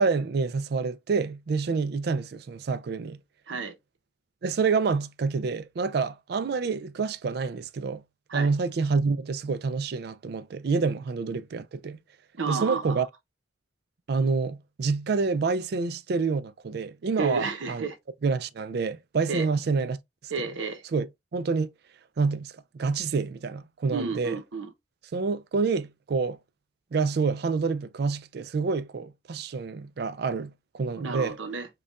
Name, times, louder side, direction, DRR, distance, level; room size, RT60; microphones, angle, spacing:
voice 1, 0.0-3.2 4.4-8.0 8.3-12.0 12.5-13.1 14.1-17.9 18.2-20.3 20.9-21.7 22.2-24.4 25.1-26.4 26.9-31.4, right 4 dB, 55° right, 0.4 m, -28 dB
voice 2, 12.4-13.0 17.2-18.0 19.3-19.5 20.3-20.8 23.9-24.7 31.0-31.7, right 4 dB, 85° right, 0.8 m, -31 dB
5.1 x 2.3 x 2.3 m
head